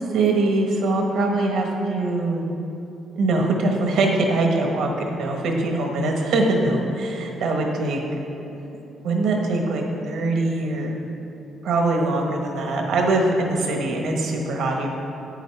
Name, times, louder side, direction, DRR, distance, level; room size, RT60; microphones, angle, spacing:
voice 1, 0.1-2.5 3.2-8.0 9.0-11.0 11.6-14.9, right 2 dB, 75° right, 1 dB, 1.4 m, -22 dB
10.0 x 9.2 x 3.4 m, 2.9 s
cardioid pair, 90°, 0 cm